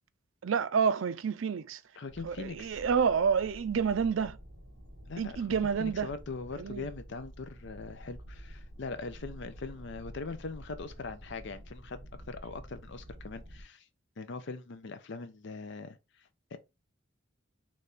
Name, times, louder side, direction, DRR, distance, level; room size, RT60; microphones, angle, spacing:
voice 1, 0.4-1.8 2.2-4.4 5.2-6.1 6.6-6.9, right 6 dB, 80° right, 0.4 m, -29 dB
voice 2, 2.0-2.8 5.1-5.4 5.8-12.0 12.3-13.9 14.2-16.0 16.5-16.6, left 4 dB, 65° left, 0.6 m, -41 dB
sound 1, 2.1-13.6, equal, 55° right, 1.6 m, -49 dB
4.0 x 3.2 x 3.4 m
head